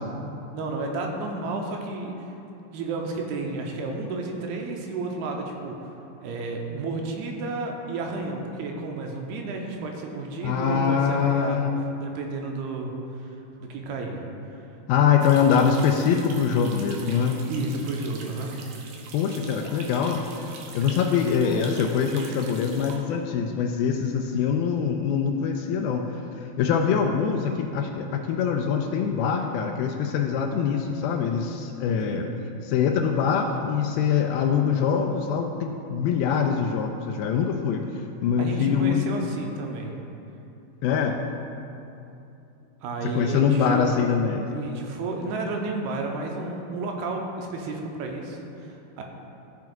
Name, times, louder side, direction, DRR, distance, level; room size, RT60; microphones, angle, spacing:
voice 1, 0.5-2.3 2.7-5.9 6.2-11.7 12.0-13.3 13.6-14.2 17.5-18.5 32.0-32.3 38.4-39.9 42.8-43.8 44.5-49.0, right 3 dB, 90° right, 1 dB, 2.6 m, -32 dB
voice 2, 10.4-11.8 14.9-17.4 19.1-20.5 20.7-26.0 26.6-32.3 32.6-37.8 38.2-39.0 40.8-41.2 43.1-44.5, left 7 dB, 80° left, 3 dB, 2.2 m, -23 dB
sound 1, 15.2-23.0, right 4 dB, 75° right, 2.1 m, -43 dB
15.0 x 6.0 x 2.4 m, 2.8 s
omnidirectional pair, 4.5 m